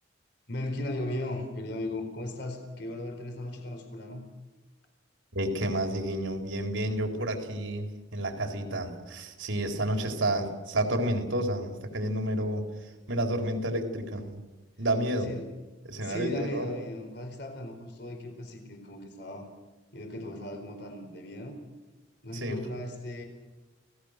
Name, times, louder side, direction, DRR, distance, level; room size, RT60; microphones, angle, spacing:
voice 1, 0.5-4.2 15.3-15.5 16.0-19.5 19.9-21.6 22.2-23.2, left 1 dB, 60° left, 4 dB, 4.5 m, -37 dB
voice 2, 5.3-14.4 14.8-15.3 15.8-16.7 22.3-22.6, right 1 dB, 80° right, 3 dB, 4.0 m, -30 dB
29.5 x 18.0 x 6.7 m, 1.2 s
head